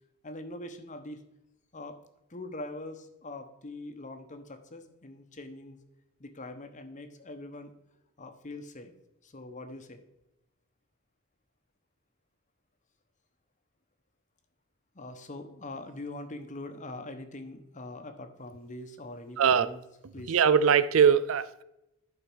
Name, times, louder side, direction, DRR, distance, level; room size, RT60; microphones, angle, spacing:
voice 1, 0.2-1.2 1.7-2.0 2.3-5.8 6.2-7.7 8.2-8.9 9.2-10.0 14.9-19.8 20.1-20.4, left 2 dB, 35° left, 1.0 m, -43 dB
voice 2, 20.3-21.6, right 7 dB, 65° right, 0.4 m, -21 dB
11.5 x 4.6 x 6.2 m
head